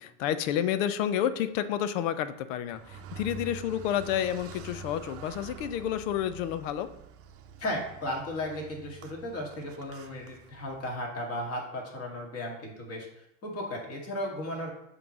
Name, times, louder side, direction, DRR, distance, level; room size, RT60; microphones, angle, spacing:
voice 1, 0.0-6.9, left 10 dB, 90° left, 13 dB, 0.7 m, -30 dB
Car, 2.7-11.0, right 6 dB, 40° right, 0.7 m, -46 dB
voice 2, 7.6-13.1 13.4-14.7, left 1 dB, 40° left, -1 dB, 2.1 m, -35 dB
7.4 x 3.3 x 6.0 m, 0.79 s
supercardioid pair, 145°, 37 cm